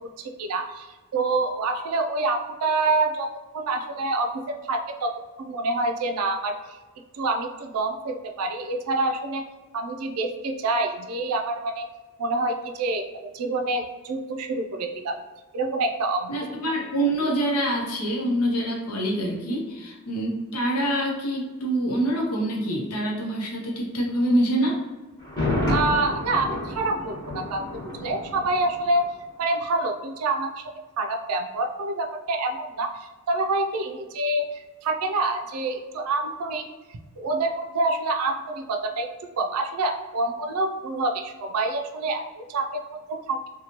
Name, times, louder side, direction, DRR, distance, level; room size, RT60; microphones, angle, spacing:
voice 1, 0.0-5.1 5.4-6.8 7.1-9.4 9.7-11.9 12.2-13.1 13.3-15.2 15.5-16.4 25.7-29.0 29.4-30.6 31.0-36.7 37.2-39.1 39.4-43.5, right 2 dB, 85° right, 4 dB, 0.4 m, -27 dB
voice 2, 16.3-24.8, right 1 dB, 85° left, -1 dB, 0.7 m, -25 dB
Thunder, 25.2-29.1 29.4-29.5, left 1 dB, 20° left, 1.1 m, -29 dB
2.8 x 2.2 x 2.9 m, 1.2 s
head